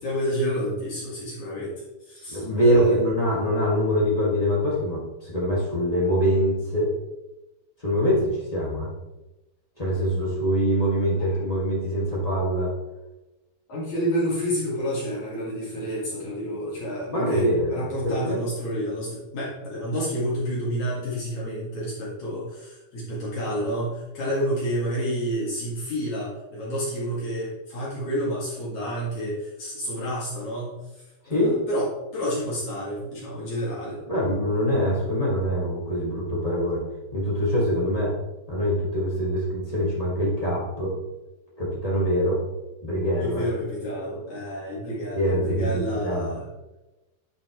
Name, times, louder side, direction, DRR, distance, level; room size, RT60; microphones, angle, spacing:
voice 1, 0.0-1.7 2.0-3.0 11.2-11.4 13.7-34.0 43.2-46.4, equal, 55° left, -7 dB, 3.2 m, -29 dB
voice 2, 2.3-6.9 7.8-8.9 9.8-12.7 17.1-18.4 31.2-31.6 34.1-36.8 37.1-38.1 38.5-40.9 41.6-42.4 42.8-43.4 45.1-46.3, equal, 30° left, -6 dB, 0.6 m, -24 dB
11.0 x 6.0 x 3.1 m, 1.0 s
omnidirectional pair, 4.3 m